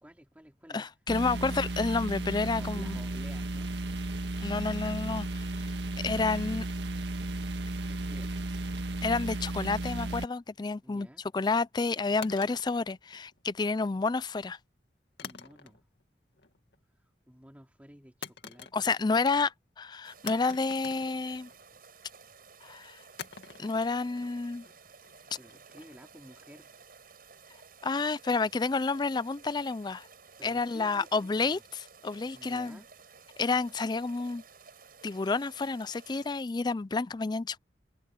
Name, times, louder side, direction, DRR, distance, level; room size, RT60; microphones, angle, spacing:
voice 1, 0.0-0.8 1.3-1.7 2.4-3.7 7.9-8.5 10.8-11.2 15.2-15.9 16.9-18.9 25.4-26.7 30.4-31.6 32.3-32.9, equal, 10° right, 3.1 m, -53 dB
voice 2, 0.7-3.0 4.4-5.5 6.0-6.7 9.0-11.1 11.3-14.6 18.7-21.5 22.6-23.0 23.6-24.6 27.8-30.1 30.4-32.8 33.4-34.4 35.0-37.6, left 4 dB, 25° left, 0.4 m, -30 dB
sound 1, 1.1-10.2, right 2 dB, 85° right, 1.6 m, -34 dB
sound 2, 12.2-13.6 15.2-16.0 16.3-16.8 18.2-19.2 19.4-19.5 20.3-21.8 23.2-26.2, left 6 dB, 75° left, 2.2 m, -46 dB
sound 3, 20.0-36.3, right 5 dB, 55° right, 6.8 m, -55 dB
open air
head